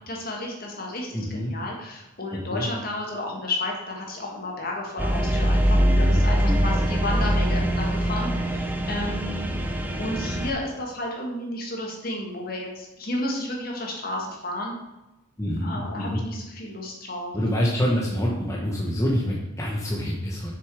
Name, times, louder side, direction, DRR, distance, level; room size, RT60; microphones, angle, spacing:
voice 1, 0.1-9.6 10.0-14.7 15.6-17.3, left 1 dB, 45° left, -1 dB, 1.9 m, -32 dB
voice 2, 1.1-1.5 2.3-2.7 5.7-6.7 15.4-16.2 17.3-20.5, equal, 15° left, -4 dB, 1.0 m, -27 dB
sound 1, 5.0-10.5, equal, 10° right, 0.7 m, -23 dB
6.6 x 6.6 x 4.8 m, 0.98 s
head